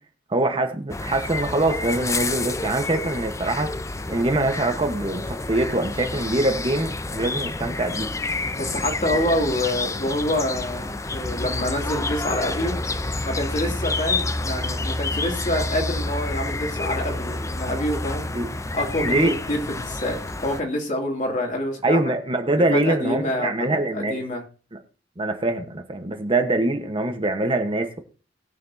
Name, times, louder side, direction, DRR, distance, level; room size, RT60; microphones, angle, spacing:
voice 1, 0.3-3.8 4.1-8.1 9.1-9.3 18.3-18.5 19.0-19.3 21.8-24.2 25.2-28.0, right 2 dB, 30° right, 6 dB, 1.1 m, -24 dB
sound 1, 0.9-20.6, left 2 dB, 15° left, 0.5 m, -29 dB
voice 2, 8.6-12.8 13.2-18.3 18.7-22.1 22.7-24.4, left 1 dB, 45° left, 1 dB, 2.6 m, -27 dB
20.5 x 6.9 x 2.7 m, 0.36 s
head